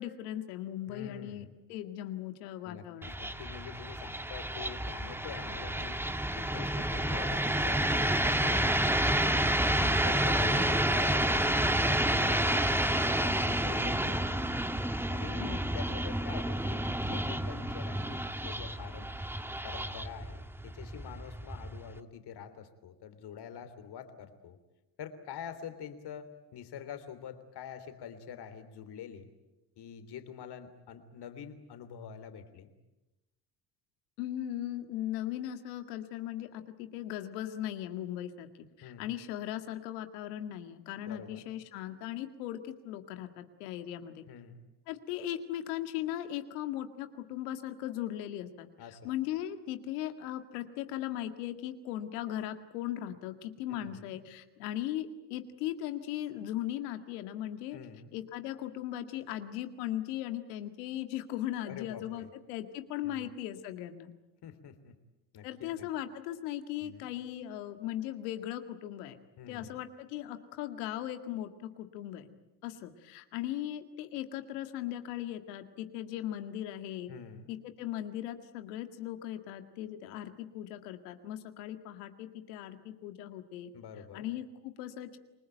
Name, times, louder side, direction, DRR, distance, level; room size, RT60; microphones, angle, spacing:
voice 1, 0.0-3.1 10.4-10.7 15.4-15.7 34.2-38.5 38.8-44.2 44.9-48.7 49.0-57.8 58.1-64.1 65.4-69.2 69.5-71.5 71.8-72.3 72.6-77.1 77.5-83.7 84.1-85.2, left 12 dB, 85° left, 8 dB, 1.9 m, -38 dB
voice 2, 0.9-1.5 2.6-6.0 6.3-11.8 12.1-14.4 15.1-19.1 19.6-24.6 25.0-29.3 29.8-32.7 38.8-39.1 41.0-41.4 44.3-44.6 48.8-49.1 53.7-54.2 57.7-58.1 61.6-62.3 63.0-63.3 64.4-64.9 65.3-65.9 66.8-67.1 69.4-69.8 77.1-77.5 83.7-84.2, left 8 dB, 60° left, 10 dB, 3.3 m, -46 dB
sound 1, 3.0-22.0, right 1 dB, 5° right, 1.5 m, -30 dB
27.5 x 20.5 x 9.1 m, 1.0 s
supercardioid pair, 75°, 46 cm